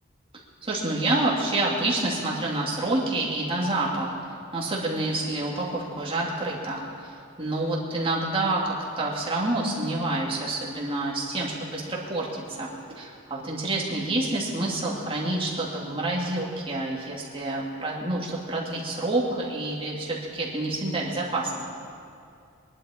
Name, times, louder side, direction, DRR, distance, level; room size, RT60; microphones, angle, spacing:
voice 1, 0.6-4.1 4.5-12.7 13.0-21.7, right 2 dB, 25° right, -4 dB, 2.4 m, -28 dB
22.0 x 11.0 x 4.4 m, 2.4 s
head